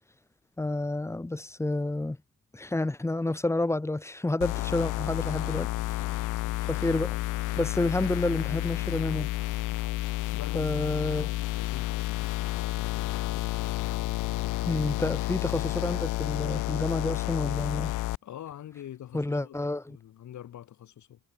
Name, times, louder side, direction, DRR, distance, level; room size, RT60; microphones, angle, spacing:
voice 1, 0.6-2.2 2.5-5.7 6.7-7.2 7.6-9.3 10.5-11.3 14.6-17.9 19.1-20.0, left 2 dB, 10° left, 0.8 m, -29 dB
sound 1, 4.4-18.2, left 18 dB, 90° left, 0.8 m, -30 dB
voice 2, 10.3-10.9 11.2-12.3 12.6-13.1 18.2-19.6 19.9-21.2, left 11 dB, 70° left, 4.6 m, -45 dB
cardioid pair, 90°, 30 cm